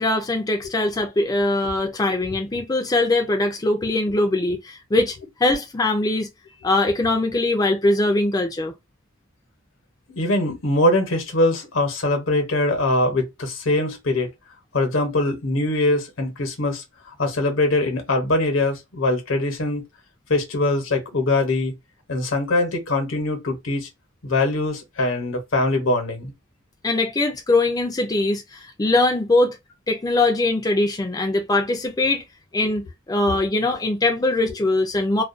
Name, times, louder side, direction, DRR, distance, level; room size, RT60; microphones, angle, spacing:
voice 1, 0.0-6.3 6.6-8.7 26.8-29.6 29.9-32.2 32.5-35.2, left 2 dB, 20° left, 0.4 m, -21 dB
voice 2, 10.1-14.3 14.7-16.8 17.2-19.8 20.3-21.7 22.1-23.9 24.2-26.3, left 2 dB, 80° left, 0.9 m, -22 dB
2.4 x 2.2 x 2.5 m
head